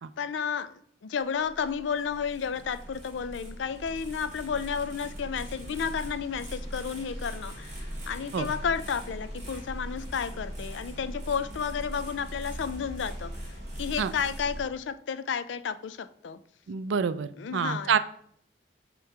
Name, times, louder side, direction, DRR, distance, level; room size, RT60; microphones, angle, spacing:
voice 1, 0.2-0.7 1.0-13.3 13.8-16.4 17.4-18.0, left 6 dB, 80° left, 0.4 m, -32 dB
sound 1, 1.2-14.6, equal, 35° right, 2.1 m, -40 dB
voice 2, 16.7-18.0, right 6 dB, 80° right, 0.4 m, -27 dB
7.9 x 3.0 x 4.6 m
head